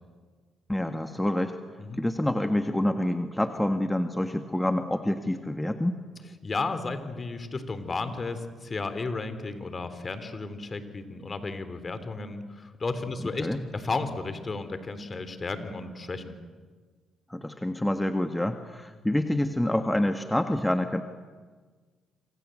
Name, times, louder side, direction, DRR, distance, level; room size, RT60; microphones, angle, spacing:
voice 1, 0.7-1.6 2.0-6.0 13.4-13.6 17.3-21.0, left 1 dB, 10° left, 7 dB, 1.8 m, -27 dB
voice 2, 6.4-16.4, left 3 dB, 40° left, 11 dB, 3.6 m, -33 dB
28.0 x 26.0 x 7.9 m, 1.5 s
hypercardioid pair, 50°, 0 cm